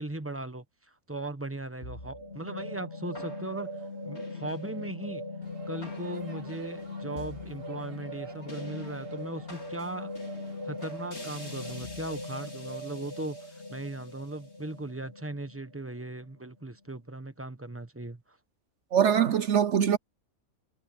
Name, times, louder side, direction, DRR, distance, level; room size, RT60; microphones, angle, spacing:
voice 1, 0.0-3.7 4.0-5.2 5.7-10.2 10.6-13.4 13.7-18.4, right 2 dB, 10° right, 1.0 m, -38 dB
sound 1, 1.8-16.3, left 1 dB, 50° left, 5.0 m, -40 dB
Crowd, 5.4-11.7, right 2 dB, 85° right, 5.5 m, -54 dB
voice 2, 18.9-20.0, right 8 dB, 60° right, 1.0 m, -23 dB
omnidirectional pair, 1.5 m